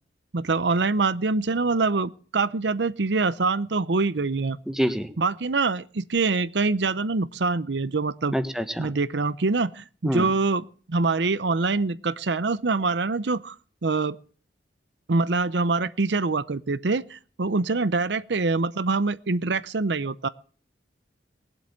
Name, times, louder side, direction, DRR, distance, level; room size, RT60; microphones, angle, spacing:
voice 1, 0.3-4.6 5.2-8.3 8.8-13.6 13.8-14.2 15.1-20.3, right 3 dB, 70° right, 0.7 m, -25 dB
voice 2, 4.7-5.1 8.3-8.9 10.0-10.3, equal, 5° right, 1.3 m, -26 dB
20.0 x 8.0 x 8.6 m
head